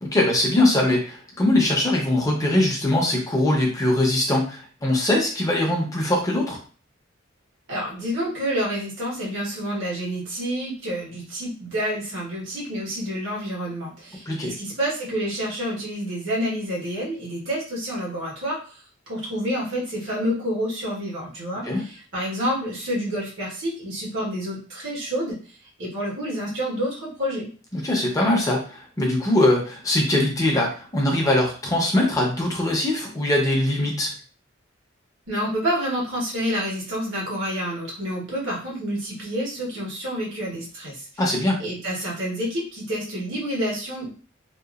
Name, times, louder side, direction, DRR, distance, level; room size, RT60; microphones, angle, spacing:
voice 1, 0.0-6.6 14.3-14.5 21.6-21.8 27.7-34.1 41.2-41.6, left 1 dB, 20° left, -1 dB, 0.7 m, -22 dB
voice 2, 7.7-25.4 25.8-27.5 35.3-41.0 41.6-44.1, equal, 70° right, -4 dB, 1.3 m, -28 dB
2.8 x 2.4 x 2.4 m, 0.39 s
head